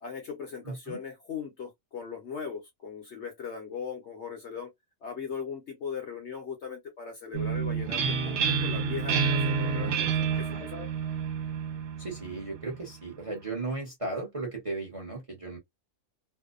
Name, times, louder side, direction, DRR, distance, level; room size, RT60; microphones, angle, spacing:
voice 1, 0.0-4.7 5.0-10.9, left 6 dB, 60° left, 0.8 m, -39 dB
voice 2, 0.6-1.0 10.3-10.6 12.0-15.6, right 3 dB, 30° right, 0.7 m, -36 dB
sound 1, 7.3-12.9, right 6 dB, 65° right, 0.8 m, -29 dB
2.6 x 2.0 x 2.3 m
omnidirectional pair, 1.6 m